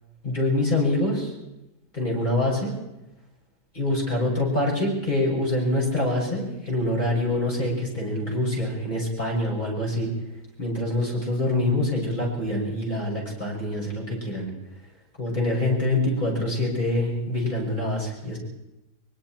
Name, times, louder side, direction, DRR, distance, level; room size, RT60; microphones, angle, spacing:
voice 1, 0.2-1.3 1.9-2.7 3.7-10.1 10.6-14.5 15.2-18.4, left 1 dB, 25° left, -3 dB, 7.0 m, -25 dB
24.0 x 23.0 x 4.6 m, 0.93 s
omnidirectional pair, 1.9 m